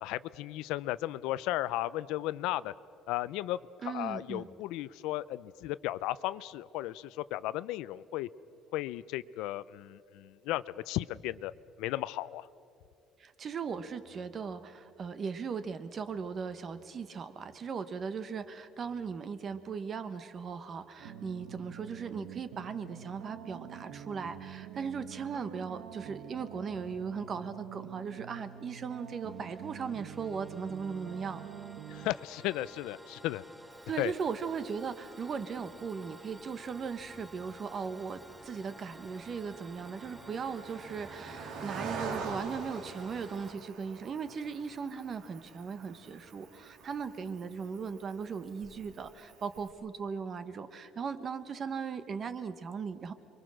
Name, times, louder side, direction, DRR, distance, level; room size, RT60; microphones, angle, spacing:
voice 1, 0.0-2.7 3.1-3.6 3.8-8.3 8.7-11.5 11.8-12.5 31.9-33.4 34.0-34.1, left 15 dB, 75° left, 17 dB, 0.5 m, -35 dB
voice 2, 3.8-4.5 13.2-31.4 33.9-53.1, right 6 dB, 30° right, 11 dB, 1.0 m, -38 dB
sound 1, 21.0-32.1, right 9 dB, 80° right, 1.5 m, -46 dB
sound 2, 28.5-43.5, equal, 5° right, 0.7 m, -52 dB
Cricket, 33.7-49.7, right 4 dB, 65° right, 2.8 m, -47 dB
29.5 x 23.0 x 6.3 m, 2.5 s
cardioid pair, 175°, 0 cm